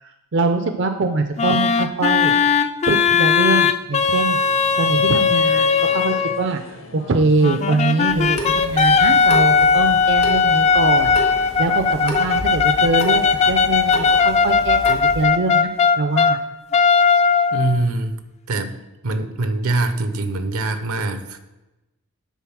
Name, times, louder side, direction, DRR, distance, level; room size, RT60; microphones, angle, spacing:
voice 1, 0.0-2.3 2.9-4.4 4.8-11.1 11.6-15.7 16.0-16.4, right 3 dB, 55° right, 6 dB, 0.5 m, -23 dB
sound 1, 1.4-6.5 7.4-16.4 16.7-17.8, left 5 dB, 30° left, 0.3 m, -17 dB
sound 2, 4.0-14.6, left 2 dB, 60° left, 0.9 m, -41 dB
Water tap faucet / Sink (filling or washing) / Drip, 8.1-15.2, equal, 75° left, 1.8 m, -33 dB
voice 2, 17.5-18.2 18.5-18.8 19.0-21.4, right 2 dB, 80° right, 9 dB, 0.8 m, -23 dB
9.2 x 4.0 x 6.1 m, 1.0 s
head